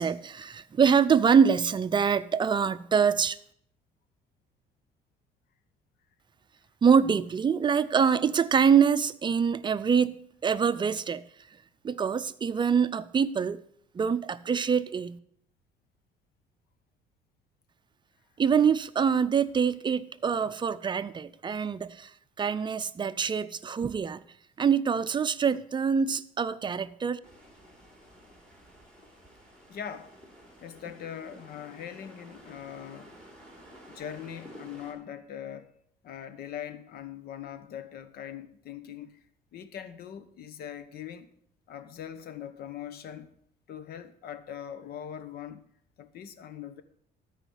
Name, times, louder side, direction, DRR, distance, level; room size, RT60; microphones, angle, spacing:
voice 1, 0.0-3.4 6.8-10.2 10.4-11.2 11.8-13.6 13.9-15.2 18.4-22.1 22.4-24.2 24.6-27.2, right 6 dB, 25° right, 0.6 m, -25 dB
sound 1, 27.2-34.9, equal, 5° left, 3.5 m, -51 dB
voice 2, 29.7-30.1 30.6-33.1 33.9-35.7 36.0-39.2 39.5-41.3 41.7-43.3 43.7-45.6 46.0-46.8, left 9 dB, 65° left, 1.0 m, -41 dB
12.5 x 5.0 x 8.0 m
cardioid pair, 110°, 17 cm